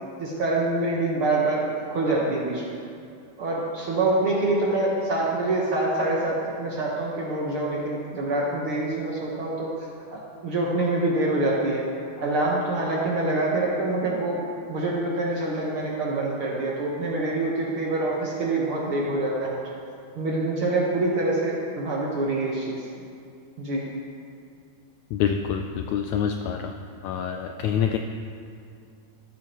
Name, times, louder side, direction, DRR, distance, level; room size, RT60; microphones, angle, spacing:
voice 1, 0.2-2.8 3.4-9.7 10.1-19.7 20.1-22.9 23.6-23.8, right 2 dB, 60° right, -4 dB, 1.5 m, -26 dB
voice 2, 25.1-26.8 27.0-28.0, left 8 dB, 85° left, 5 dB, 1.6 m, -26 dB
14.0 x 12.5 x 3.0 m, 2.4 s
omnidirectional pair, 3.7 m